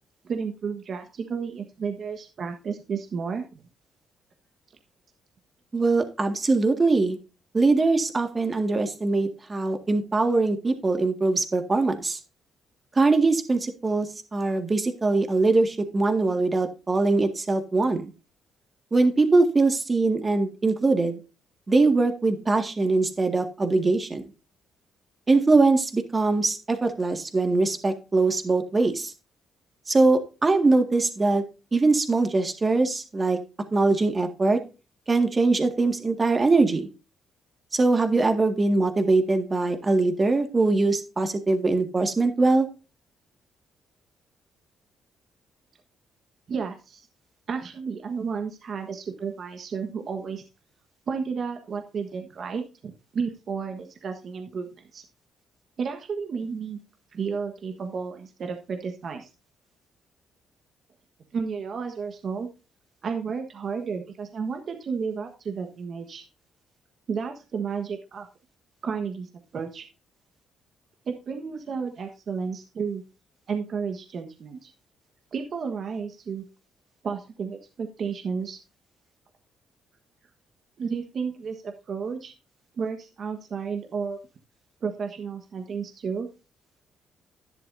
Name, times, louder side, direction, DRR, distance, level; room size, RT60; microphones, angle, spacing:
voice 1, 0.2-3.6 46.5-47.1 47.5-50.4 51.1-55.0 55.8-56.8 57.1-59.3 61.3-62.5 63.0-66.2 67.1-68.3 68.8-69.9 71.1-73.0 73.5-74.7 75.3-76.4 77.0-78.6 80.8-82.3 82.8-84.2 84.8-86.3, right 5 dB, 55° right, 5 dB, 1.4 m, -32 dB
voice 2, 5.7-7.2 7.5-12.2 13.0-14.1 14.3-18.1 18.9-21.2 21.7-24.2 25.3-29.1 29.9-31.4 31.7-33.4 33.7-34.6 35.1-36.9 37.7-42.7, right 3 dB, 25° right, 6 dB, 1.9 m, -22 dB
11.0 x 10.5 x 2.7 m, 0.31 s
cardioid pair, 90°, 0 cm